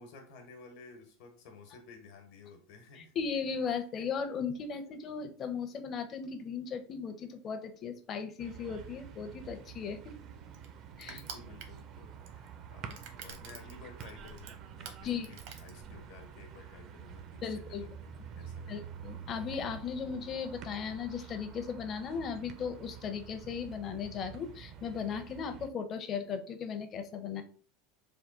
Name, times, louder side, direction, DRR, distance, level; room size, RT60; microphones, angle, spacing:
voice 1, 0.0-3.1 10.3-10.4 11.1-18.0 18.4-18.9, left 4 dB, 70° left, 4 dB, 1.1 m, -53 dB
voice 2, 3.0-10.0 11.0-11.2 15.0-15.3 17.4-17.8 18.7-27.4, left 6 dB, 40° left, 8 dB, 0.6 m, -37 dB
sound 1, 8.4-25.7, right 8 dB, 45° right, 0.4 m, -48 dB
Crushing, 9.5-16.3, right 6 dB, 65° right, 0.8 m, -50 dB
3.5 x 2.2 x 3.7 m, 0.41 s
supercardioid pair, 110°, 0 cm